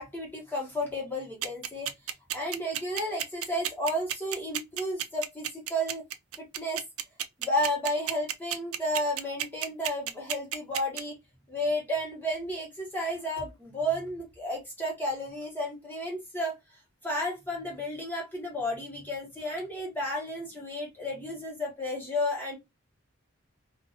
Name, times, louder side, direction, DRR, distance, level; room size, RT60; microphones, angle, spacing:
voice 1, 0.0-1.9 2.3-6.0 6.4-6.8 7.4-11.2 11.5-16.6 17.0-22.6, equal, 10° left, 1.1 m, -32 dB
sound 1, 1.4-11.0, right 11 dB, 85° right, 0.4 m, -31 dB
2.6 x 2.4 x 2.7 m
head